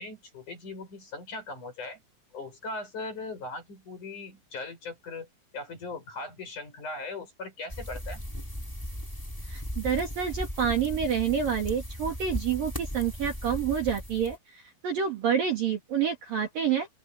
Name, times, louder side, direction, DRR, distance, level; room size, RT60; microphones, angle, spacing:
voice 1, 0.0-2.0 2.3-5.3 5.5-8.2, left 3 dB, 35° left, 8.7 m, -39 dB
sound 1, 7.7-14.4, equal, 5° left, 5.6 m, -37 dB
voice 2, 9.5-16.9, right 8 dB, 50° right, 3.5 m, -28 dB
open air
omnidirectional pair, 5.9 m